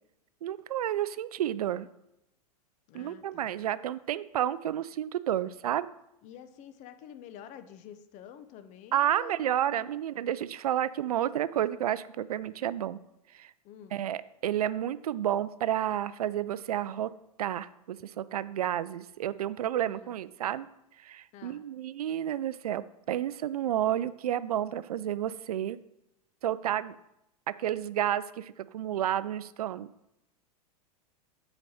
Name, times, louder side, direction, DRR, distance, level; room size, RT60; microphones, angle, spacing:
voice 1, 0.4-1.9 2.9-5.9 8.9-13.0 13.4-13.5 13.9-17.1 17.4-20.7 21.0-25.8 26.4-27.0 27.5-29.9, right 11 dB, 70° right, 17 dB, 0.4 m, -31 dB
voice 2, 2.9-3.5 6.2-9.9 13.6-14.0 19.8-20.1 21.3-21.6, left 9 dB, 35° left, 10 dB, 0.7 m, -49 dB
8.2 x 4.1 x 6.4 m, 0.85 s
figure-of-eight pair, 90°, 20 cm